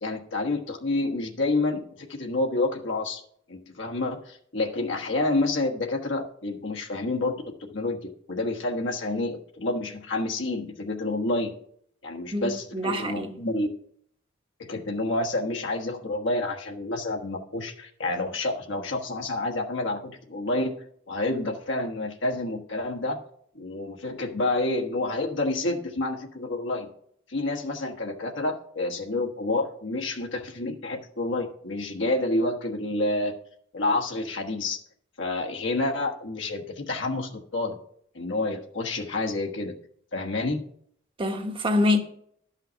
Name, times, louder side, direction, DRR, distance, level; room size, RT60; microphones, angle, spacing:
voice 1, 0.0-1.8 2.1-3.2 3.5-8.0 8.3-11.5 12.0-13.7 14.6-23.2 23.5-26.9 27.3-33.3 33.7-34.8 35.2-37.8 38.1-39.7 40.1-40.6, left 2 dB, 70° left, 1.3 m, -29 dB
voice 2, 12.3-13.3 41.2-42.0, left 2 dB, 25° right, 1.0 m, -25 dB
12.0 x 5.7 x 6.2 m
head